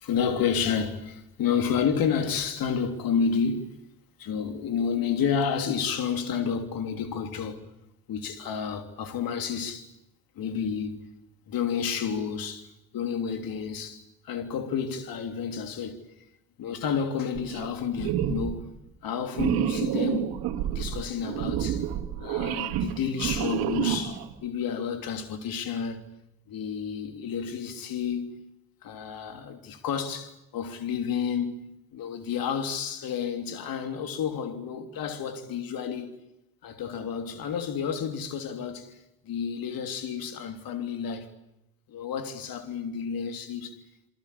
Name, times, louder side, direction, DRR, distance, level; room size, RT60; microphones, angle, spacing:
voice 1, 0.0-3.7 4.2-7.6 8.1-9.9 10.3-11.0 11.5-12.7 12.9-16.0 16.6-18.7 19.0-21.9 22.2-26.1 26.5-28.4 28.8-36.1 36.6-41.3 41.9-43.8, left 7 dB, 75° left, 3.3 m, -30 dB
sound 1, 17.3-17.7 18.0-18.6 19.3-24.3, right 10 dB, 85° right, 2.5 m, -29 dB
28.0 x 23.5 x 8.5 m
supercardioid pair, 50°, 35 cm